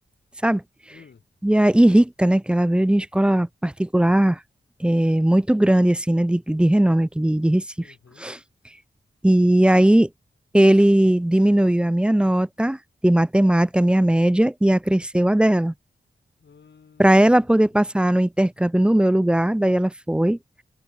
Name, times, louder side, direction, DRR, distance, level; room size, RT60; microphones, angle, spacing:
voice 1, 0.9-1.2 7.8-8.3 16.4-17.7, left 6 dB, 70° left, 7.6 m, -53 dB
voice 2, 1.4-4.4 4.8-7.6 8.2-8.4 9.2-10.1 10.5-12.8 13.0-15.7 17.0-20.4, right 1 dB, 5° right, 0.3 m, -18 dB
wide cardioid pair, 130°, 19 cm